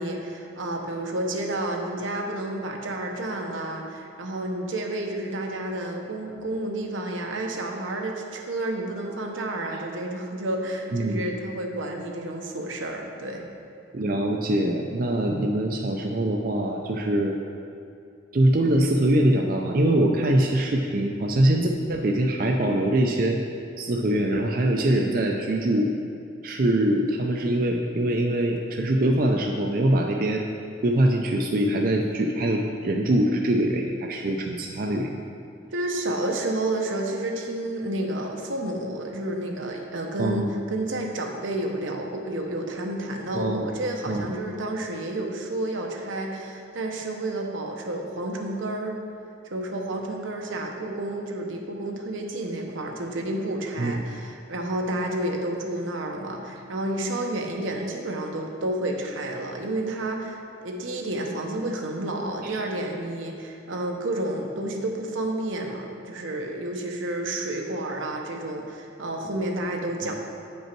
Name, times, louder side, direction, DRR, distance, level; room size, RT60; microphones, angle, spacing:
voice 1, 0.0-13.4 35.7-49.0 49.5-70.1, right 1 dB, 85° right, 1 dB, 0.9 m, -30 dB
voice 2, 13.9-17.4 18.3-23.4 23.8-25.9 26.4-30.4 30.8-35.2 40.2-40.5 43.3-43.7 44.1-44.3 53.8-53.9 62.4-62.6, right 1 dB, 45° right, 1 dB, 0.5 m, -23 dB
8.5 x 5.4 x 4.5 m, 2.5 s
head